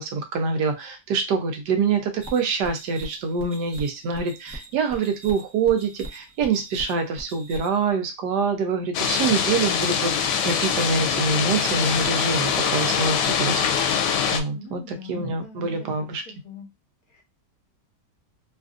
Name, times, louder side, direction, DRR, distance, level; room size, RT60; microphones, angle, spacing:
voice 1, 0.0-14.0 14.3-14.8 15.1-16.2, right 5 dB, 80° right, 5 dB, 1.3 m, -25 dB
sound 1, 2.2-7.9, right 1 dB, 10° right, 0.6 m, -41 dB
sound 2, 8.9-14.4, left 7 dB, 85° left, 1.2 m, -23 dB
voice 2, 14.5-16.7 17.1-17.2, left 5 dB, 60° left, 2 dB, 1.3 m, -43 dB
3.2 x 2.5 x 2.4 m, 0.22 s
omnidirectional pair, 1.8 m